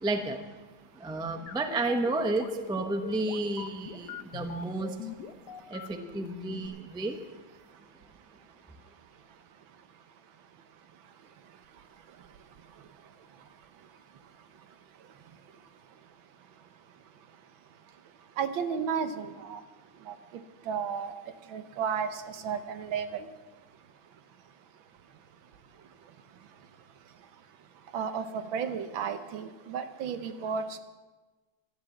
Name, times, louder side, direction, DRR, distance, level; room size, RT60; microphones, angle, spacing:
voice 1, 0.0-0.4 1.0-4.9 5.7-7.2, right 2 dB, 5° right, 6 dB, 0.3 m, -31 dB
sound 1, 1.5-6.7, left 7 dB, 65° left, 1.5 m, -41 dB
voice 2, 18.4-19.6 20.1-20.2 20.7-21.1 21.5-23.3 27.9-28.2 28.5-30.8, right 6 dB, 85° right, 10 dB, 1.7 m, -33 dB
12.5 x 10.5 x 7.1 m, 1.2 s
omnidirectional pair, 2.1 m